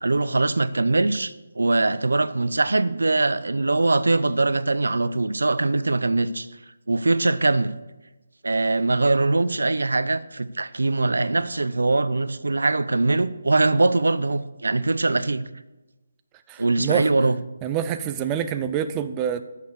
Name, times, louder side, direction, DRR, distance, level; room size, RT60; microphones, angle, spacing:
voice 1, 0.0-6.5 6.9-7.7 8.4-15.4 16.6-17.4, right 2 dB, 90° right, 15 dB, 0.6 m, -22 dB
voice 2, 16.5-17.1 17.6-19.4, right 9 dB, 15° right, 9 dB, 0.5 m, -26 dB
10.5 x 6.6 x 6.6 m, 1.1 s
figure-of-eight pair, 160°, 0 cm